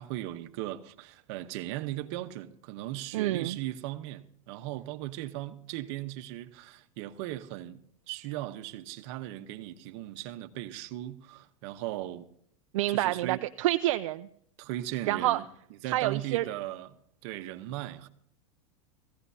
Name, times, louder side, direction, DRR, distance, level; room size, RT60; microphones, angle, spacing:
voice 1, 0.0-7.8 8.1-12.3 12.9-13.4 14.6-15.5 15.8-17.0 17.2-18.1, right 14 dB, 60° right, 1.0 m, -38 dB
voice 2, 3.1-3.6 12.7-14.3 15.1-15.4 15.9-16.5, right 15 dB, 75° right, 0.5 m, -28 dB
17.5 x 15.5 x 2.8 m
supercardioid pair, 130°, 17 cm